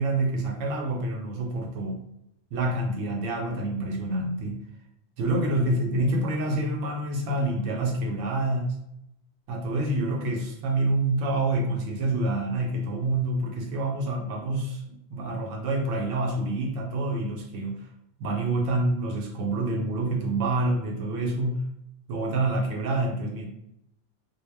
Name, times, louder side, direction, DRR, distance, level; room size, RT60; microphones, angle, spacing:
voice 1, 0.0-2.0 2.5-4.5 5.2-8.8 9.5-17.8 18.2-21.6 22.1-23.4, right 2 dB, 75° right, 1 dB, 0.9 m, -27 dB
2.2 x 2.0 x 3.3 m, 0.77 s
omnidirectional pair, 1.4 m